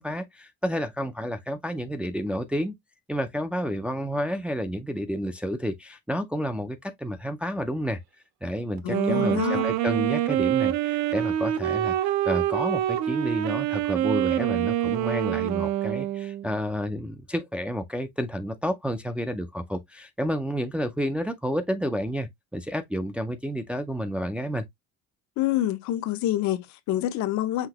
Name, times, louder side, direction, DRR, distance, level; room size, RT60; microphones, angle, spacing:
voice 1, 0.0-2.7 3.1-8.0 8.4-24.6, equal, 5° right, 0.3 m, -30 dB
voice 2, 8.8-9.7 25.4-27.7, left 13 dB, 65° left, 0.6 m, -27 dB
Wind instrument woodwind instrument, 8.8-16.5, right 12 dB, 65° right, 0.6 m, -26 dB
5.8 x 2.8 x 2.8 m
cardioid pair, 170°, 30 cm